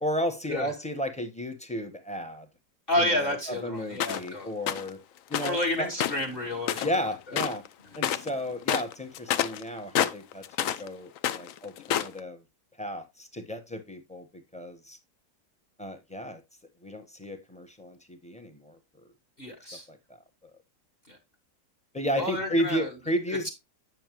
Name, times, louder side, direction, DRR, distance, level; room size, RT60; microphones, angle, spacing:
voice 1, 0.0-2.5 3.0-5.0 5.3-5.9 6.8-7.6 7.9-12.4 12.8-14.2 14.5-15.0 15.8-16.4 16.8-18.8 19.9-20.0 21.9-23.5, equal, 5° left, 0.8 m, -33 dB
voice 2, 2.9-4.5 5.4-7.4 19.4-19.9 21.1-21.2 22.2-22.9 23.4-23.5, left 1 dB, 35° left, 1.6 m, -30 dB
sound 1, 4.0-4.3 4.7-4.9 5.3-5.6 5.9-7.0 7.3-7.7 7.9-8.3 8.6-10.9 11.2-12.2, left 10 dB, 70° left, 0.8 m, -28 dB
9.1 x 6.4 x 3.1 m
omnidirectional pair, 1.9 m